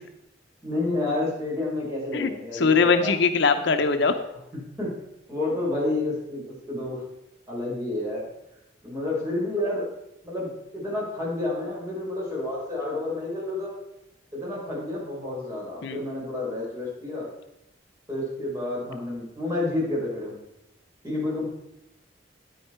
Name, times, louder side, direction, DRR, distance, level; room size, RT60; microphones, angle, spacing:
voice 1, 0.6-3.1 4.8-4.9 5.3-7.0 7.5-8.3 8.8-9.9 10.2-13.8 14.3-17.3 18.1-20.4 21.0-21.5, left 2 dB, 15° right, -6 dB, 4.8 m, -29 dB
voice 2, 2.1-4.2 15.8-16.0, left 4 dB, 70° left, 8 dB, 0.7 m, -22 dB
9.3 x 9.3 x 4.5 m, 0.86 s
head